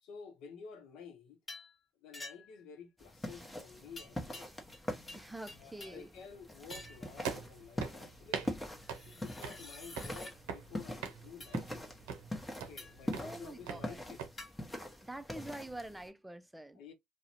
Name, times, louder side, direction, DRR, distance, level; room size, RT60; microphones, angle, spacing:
voice 1, 0.0-1.4 2.0-4.5 5.6-8.6 9.0-11.9 12.6-14.2 16.8-16.9, left 6 dB, 70° left, 0.6 m, -52 dB
sound 1, 1.5-1.8 2.1-2.6 4.0-4.8 5.1-6.1 6.7-7.1 8.8-10.4 11.4-11.6 12.8-13.1 14.4-14.5, left 2 dB, 30° left, 1.1 m, -49 dB
sound 2, 3.0-16.1, left 1 dB, 10° left, 0.8 m, -44 dB
voice 2, 5.1-6.1 13.2-14.0 15.0-16.8, right 1 dB, 10° right, 0.4 m, -46 dB
sound 3, 6.7-14.3, right 6 dB, 85° right, 0.6 m, -44 dB
2.4 x 2.1 x 2.9 m
supercardioid pair, 70°, 0 cm